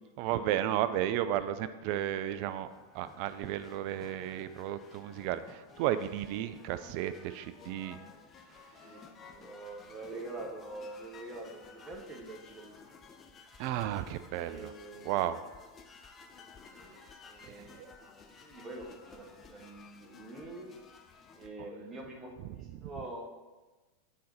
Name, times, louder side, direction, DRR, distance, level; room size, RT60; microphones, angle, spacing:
voice 1, 0.2-2.7 2.9-8.0 8.5-9.0 13.6-14.7 15.0-15.4 17.5-17.9 22.7-22.9, right 12 dB, 45° right, 12 dB, 0.3 m, -33 dB
voice 2, 2.0-2.5 8.8-12.8 14.3-15.1 16.4-17.7 18.0-20.7 21.3-23.2, right 2 dB, 20° right, 0 dB, 1.3 m, -46 dB
sound 1, 2.1-21.5, left 5 dB, 20° left, 0.6 m, -55 dB
7.4 x 3.9 x 4.2 m, 1.2 s
figure-of-eight pair, 90°, 0 cm